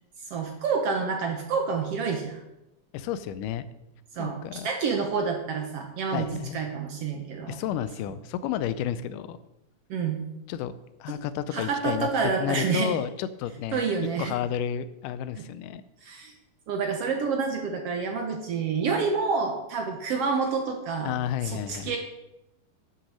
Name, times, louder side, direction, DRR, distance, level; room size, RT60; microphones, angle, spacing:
voice 1, 0.3-2.4 4.2-6.3 6.5-7.6 9.9-10.2 11.5-13.0 13.7-14.3 15.4-15.5 16.0-16.3 16.7-21.1 21.4-22.0, right 5 dB, 65° right, 3 dB, 1.6 m, -28 dB
voice 2, 2.9-3.7 4.2-4.7 6.1-6.7 7.5-9.4 10.5-10.7 11.0-13.9 14.2-15.8 21.0-21.9, left 10 dB, 80° left, 14 dB, 2.1 m, -31 dB
10.0 x 6.1 x 6.2 m, 0.92 s
omnidirectional pair, 3.7 m